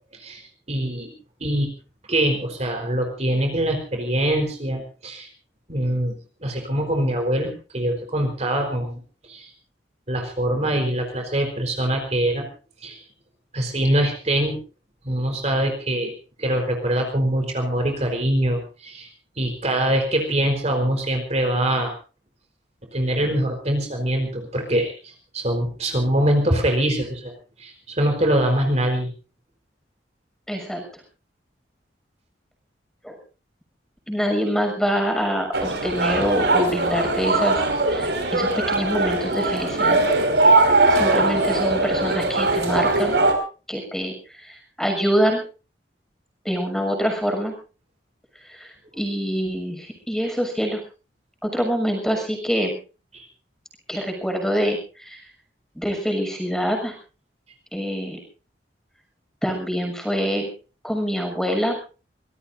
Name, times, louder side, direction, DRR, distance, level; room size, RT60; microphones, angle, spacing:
voice 1, 0.7-1.1 1.4-1.7 2.1-5.3 5.7-6.1 6.4-9.0 9.3-9.5 10.1-12.4 12.8-13.0 13.5-14.6 15.0-16.1 16.4-19.1 19.4-21.9 22.9-27.3 27.6-29.1 53.1-53.2, right 1 dB, 40° right, 3 dB, 4.3 m, -23 dB
voice 2, 30.5-30.8 33.0-33.1 34.1-40.0 40.9-43.2 43.7-44.1 44.4-45.4 46.4-47.5 48.5-50.8 51.4-52.8 53.9-54.8 55.1-55.2 55.8-56.9 57.7-58.2 59.4-60.5 60.8-61.8, equal, 5° left, 4 dB, 6.6 m, -25 dB
sound 1, 35.5-43.3, right 2 dB, 70° right, 5.3 m, -20 dB
25.0 x 20.0 x 2.7 m, 0.36 s
head